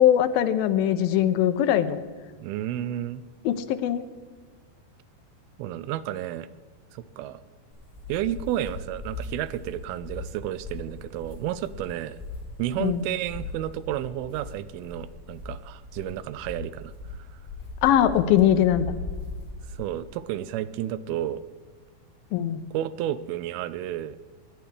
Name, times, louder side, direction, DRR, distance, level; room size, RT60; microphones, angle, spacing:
voice 1, 0.0-2.0 3.5-4.0 12.8-13.0 17.8-18.9 22.3-22.6, left 10 dB, 80° left, 10 dB, 2.4 m, -21 dB
voice 2, 2.4-3.3 5.6-6.5 6.9-7.4 8.1-12.2 12.6-16.9 17.3-17.4 19.7-21.4 22.7-24.2, right 12 dB, 85° right, 15 dB, 2.5 m, -31 dB
sound 1, 7.7-20.0, left 3 dB, 15° left, 3.3 m, -39 dB
18.5 x 11.5 x 3.3 m, 1.5 s
omnidirectional pair, 4.3 m